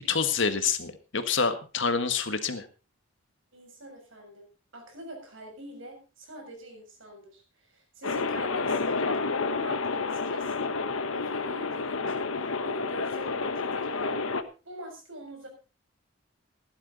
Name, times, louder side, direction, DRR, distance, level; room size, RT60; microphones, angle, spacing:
voice 1, 0.1-2.6, left 5 dB, 65° left, 9 dB, 1.7 m, -27 dB
voice 2, 3.5-4.5 4.7-9.1 9.5-10.8 11.1-14.4 14.6-15.5, equal, 75° right, 2 dB, 7.0 m, -44 dB
sound 1, 8.0-14.4, left 4 dB, 90° left, 1.2 m, -30 dB
16.0 x 11.5 x 4.1 m, 0.33 s
head